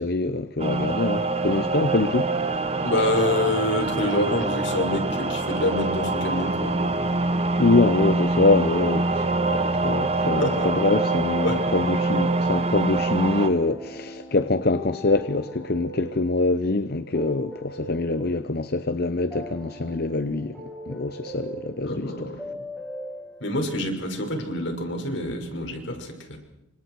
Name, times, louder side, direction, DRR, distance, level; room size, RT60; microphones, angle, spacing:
voice 1, 0.0-2.4 7.6-20.6 20.9-22.3, left 3 dB, 50° left, 0.8 m, -24 dB
sound 1, 0.6-13.5, right 3 dB, 30° right, 1.6 m, -25 dB
voice 2, 2.8-7.1 10.3-10.7 11.4-11.6 21.8-22.4 23.4-26.4, left 1 dB, 70° left, 5.9 m, -27 dB
sound 2, 8.5-23.6, equal, 5° left, 7.9 m, -40 dB
29.5 x 26.0 x 4.7 m
head